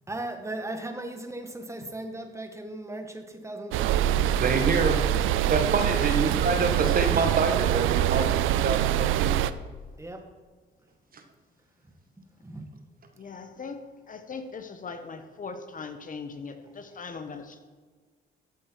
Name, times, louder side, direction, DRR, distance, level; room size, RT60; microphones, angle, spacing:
voice 1, 0.1-4.4 10.0-10.2 12.4-12.7, right 1 dB, 15° right, 5 dB, 1.7 m, -37 dB
sound 1, 3.7-9.5, right 12 dB, 85° right, 0.5 m, -24 dB
voice 2, 4.1-5.0 5.5-9.4 11.1-11.2, right 4 dB, 45° right, 5 dB, 1.7 m, -27 dB
voice 3, 5.8-6.2 13.1-17.6, left 5 dB, 45° left, 8 dB, 1.2 m, -40 dB
14.0 x 8.0 x 4.7 m, 1.5 s
cardioid pair, 90°, 20 cm